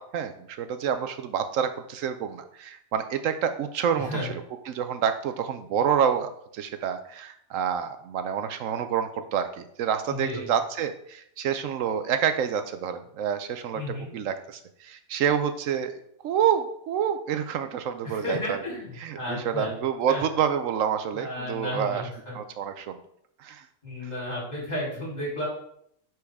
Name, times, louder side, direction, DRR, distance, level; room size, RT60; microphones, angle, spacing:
voice 1, 0.0-4.3 4.7-15.9 16.2-18.6 19.0-22.0 22.3-23.0 23.4-23.6 24.0-24.1, right 8 dB, 75° right, 9 dB, 1.0 m, -28 dB
voice 2, 3.9-4.3 10.1-10.5 13.7-14.1 18.0-19.7 20.1-20.2 21.1-22.4 23.8-25.5, left 1 dB, 30° left, -6 dB, 3.4 m, -33 dB
9.7 x 4.6 x 3.5 m, 0.70 s
omnidirectional pair, 1.4 m